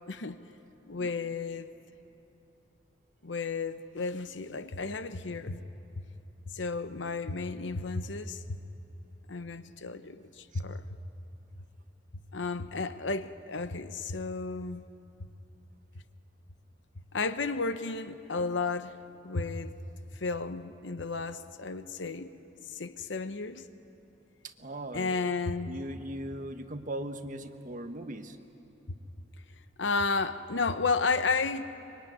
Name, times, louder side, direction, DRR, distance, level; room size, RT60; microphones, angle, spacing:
voice 1, 0.1-0.4 0.9-1.7 3.2-5.6 6.5-8.6 9.3-10.8 12.3-14.9 17.1-19.0 19.2-19.8 20.1-22.3 22.7-23.7 24.9-25.8 29.8-31.6, left 4 dB, 90° left, 11 dB, 0.9 m, -33 dB
voice 2, 24.4-25.3 25.7-28.4, right 1 dB, 45° right, 7 dB, 1.2 m, -39 dB
24.5 x 23.0 x 9.5 m, 2.9 s
head